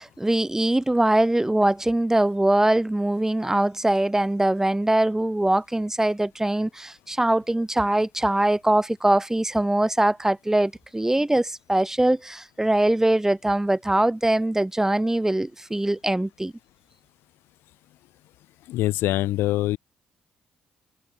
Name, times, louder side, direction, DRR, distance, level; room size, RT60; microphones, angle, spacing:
voice 1, 0.0-16.5, right 1 dB, 10° right, 1.4 m, -22 dB
voice 2, 18.7-19.8, left 16 dB, 70° left, 1.1 m, -23 dB
hypercardioid pair, 40°, 4 cm